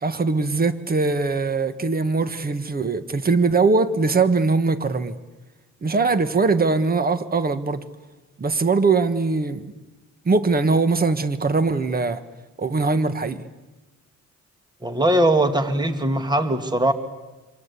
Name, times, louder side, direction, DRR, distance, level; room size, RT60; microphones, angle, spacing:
voice 1, 0.0-5.2 5.8-7.8 8.4-9.7 10.2-12.2 12.6-13.4, right 4 dB, 30° right, 11 dB, 1.5 m, -21 dB
voice 2, 14.8-16.9, right 1 dB, 15° right, 8 dB, 1.9 m, -20 dB
27.0 x 25.5 x 8.4 m, 1.2 s
cardioid pair, 120°, 30 cm